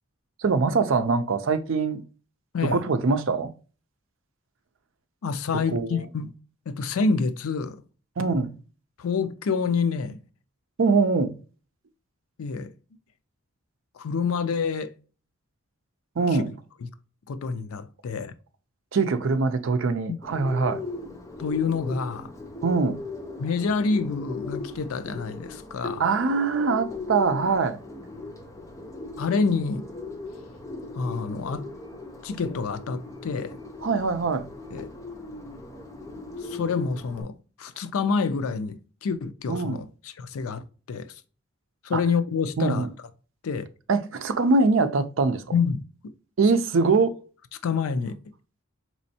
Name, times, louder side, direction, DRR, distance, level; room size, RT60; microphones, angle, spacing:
voice 1, 0.4-2.0 2.6-3.5 5.5-6.1 8.2-8.6 10.8-11.4 16.2-16.5 18.9-20.8 22.6-23.0 26.0-27.8 33.8-34.5 39.5-39.8 41.9-42.0 42.6-42.9 43.9-45.5 46.4-47.2, right 4 dB, 65° right, 0.5 m, -23 dB
voice 2, 5.2-6.3 6.7-7.8 9.0-10.2 12.4-12.7 14.0-14.9 17.3-18.3 21.4-22.3 23.4-26.0 29.2-29.9 30.9-31.6 32.2-33.6 34.7-34.9 36.4-40.6 40.9-41.1 41.8-42.9 43.4-43.7 45.5-45.8 47.6-48.1, left 5 dB, 90° left, 0.4 m, -27 dB
Bird, 20.2-37.2, left 3 dB, 15° left, 0.5 m, -38 dB
4.2 x 3.1 x 2.7 m
head